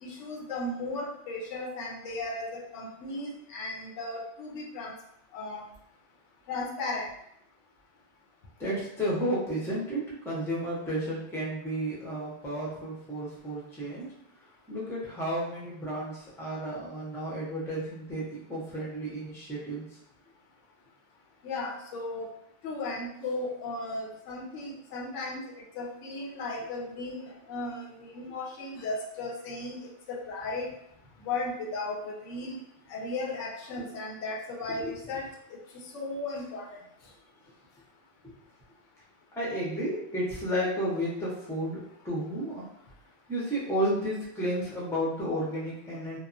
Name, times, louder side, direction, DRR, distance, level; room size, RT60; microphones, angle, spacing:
voice 1, 0.0-4.9 5.3-5.6 6.5-7.1 21.4-22.3 22.6-25.4 25.8-29.8 30.1-30.7 31.2-32.6 32.9-35.2 35.9-36.6, left 2 dB, 85° left, -1 dB, 0.9 m, -35 dB
voice 2, 8.6-14.1 14.7-19.8 34.8-34.9 38.2-38.3 39.4-42.6 43.3-46.2, equal, 5° left, -6 dB, 0.5 m, -32 dB
2.9 x 2.0 x 2.5 m, 0.75 s
omnidirectional pair, 1.2 m